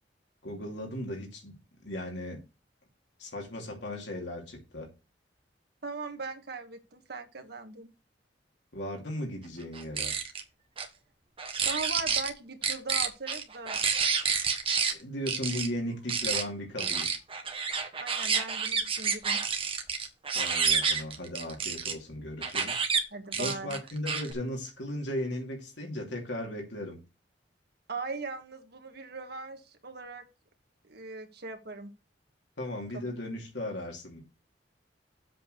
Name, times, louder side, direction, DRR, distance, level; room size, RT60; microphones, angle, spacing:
voice 1, 0.4-1.5 1.8-2.4 3.2-4.9 8.7-10.2 14.9-17.1 20.3-22.9 23.3-27.0 32.6-34.2, left 1 dB, 75° left, 2.7 m, -36 dB
voice 2, 5.8-7.9 11.6-13.8 18.0-19.4 23.1-23.8 27.9-30.2 30.8-31.9, right 3 dB, 60° right, 1.7 m, -39 dB
sound 1, 9.7-10.4 10.8-10.9 11.4-12.3 12.6-14.9 15.3-15.7 16.1-16.4 16.8-21.9 22.4-23.0 23.3-24.3, right 6 dB, 30° right, 1.4 m, -29 dB
7.8 x 4.9 x 6.7 m
head